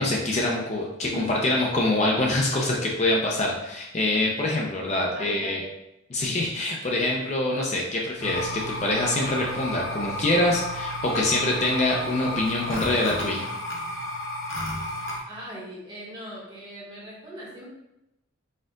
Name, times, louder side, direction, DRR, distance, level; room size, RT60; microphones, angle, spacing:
voice 1, 0.0-5.6 6.1-13.5, left 2 dB, 35° left, -1 dB, 0.5 m, -25 dB
voice 2, 1.0-1.6 5.1-5.7 15.3-17.7, equal, 20° right, -6 dB, 1.2 m, -40 dB
sound 1, 8.2-15.2, equal, 65° left, 0.9 m, -32 dB
4.3 x 2.4 x 3.7 m, 0.88 s
head